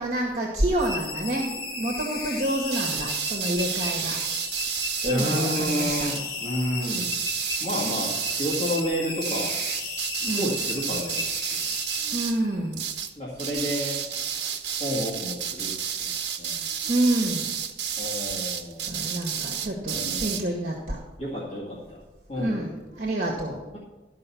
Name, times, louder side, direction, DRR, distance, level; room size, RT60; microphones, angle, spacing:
voice 1, 0.0-4.2 5.0-6.1 10.2-10.6 12.0-12.8 16.8-17.5 18.8-21.0 22.4-23.6, right 1 dB, 45° right, -1 dB, 1.6 m, -28 dB
sound 1, 0.8-12.7, left 3 dB, 55° left, 1.3 m, -35 dB
sound 2, 2.7-6.2 6.8-8.8 9.2-12.4 12.7-13.1 13.4-20.4, right 8 dB, 75° right, 1.1 m, -31 dB
voice 2, 5.0-7.1 7.6-9.6 10.2-11.2 11.5-11.8 13.2-14.1 14.8-16.1 16.4-16.6 18.0-19.0 19.8-20.4 21.2-22.0 22.3-22.6, equal, 35° left, -7 dB, 2.0 m, -30 dB
13.0 x 5.5 x 6.9 m, 1.2 s
head